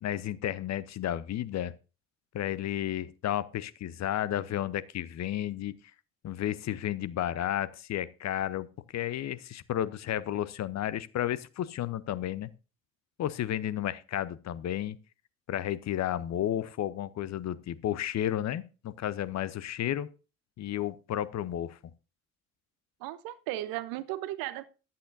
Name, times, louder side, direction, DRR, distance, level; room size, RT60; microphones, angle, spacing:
voice 1, 0.0-1.7 2.3-5.7 6.2-8.7 8.9-12.5 13.2-15.0 15.5-20.1 20.6-21.8, left 11 dB, 45° left, 17 dB, 0.8 m, -32 dB
voice 2, 23.0-24.7, right 15 dB, 60° right, 16 dB, 0.9 m, -36 dB
14.5 x 10.0 x 2.6 m, 0.33 s
figure-of-eight pair, 45°, 39 cm